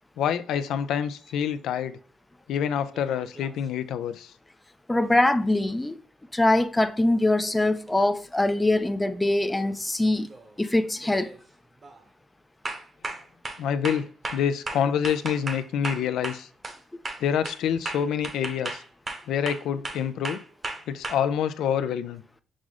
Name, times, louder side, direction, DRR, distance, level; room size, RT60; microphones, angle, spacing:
voice 1, 0.2-2.0 2.5-4.3 13.6-14.1 14.3-16.5 17.2-18.8 19.3-20.4 20.9-22.2, left 8 dB, 80° left, 0.4 m, -27 dB
sound 1, 2.9-3.6 7.9-8.0 9.5-9.8 10.2-10.6 11.0-11.4 11.8-12.0 12.6-16.8 17.0-21.1, right 2 dB, 35° right, 0.9 m, -36 dB
voice 2, 4.9-6.0 6.3-10.3 10.6-11.4, left 1 dB, 10° left, 0.4 m, -23 dB
6.1 x 2.1 x 3.6 m
cardioid pair, 90°, 0 cm